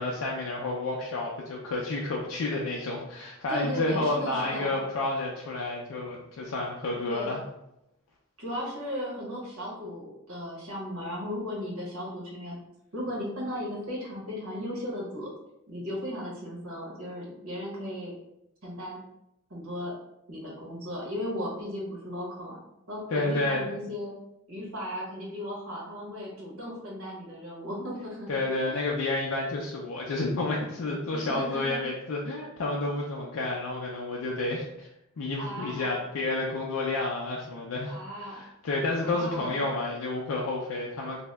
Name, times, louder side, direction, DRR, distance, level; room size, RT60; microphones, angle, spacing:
voice 1, 0.0-7.4 23.1-23.9 28.3-34.9 35.2-41.2, left 2 dB, 80° left, -3 dB, 0.4 m, -30 dB
voice 2, 3.5-4.8 7.1-7.3 8.4-12.6 12.9-15.3 15.7-18.1 18.6-19.0 19.5-19.9 20.3-22.6 22.9-24.1 24.5-28.3 28.7-28.9 31.1-31.8 35.4-35.9 37.9-38.4 39.0-39.6, equal, 80° right, -4 dB, 1.1 m, -36 dB
2.7 x 2.1 x 3.3 m, 0.86 s
head